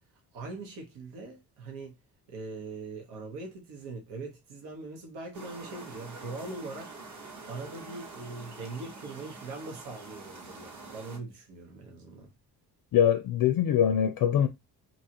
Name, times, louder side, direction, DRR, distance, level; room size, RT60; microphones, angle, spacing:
voice 1, 0.3-1.9 2.3-7.0 7.5-12.3, right 3 dB, 90° right, 1.0 m, -41 dB
sound 1, 5.3-11.2, right 3 dB, 45° right, 1.0 m, -46 dB
voice 2, 12.9-14.5, left 9 dB, 55° left, 0.4 m, -23 dB
2.8 x 2.3 x 2.8 m
cardioid pair, 80°, 41 cm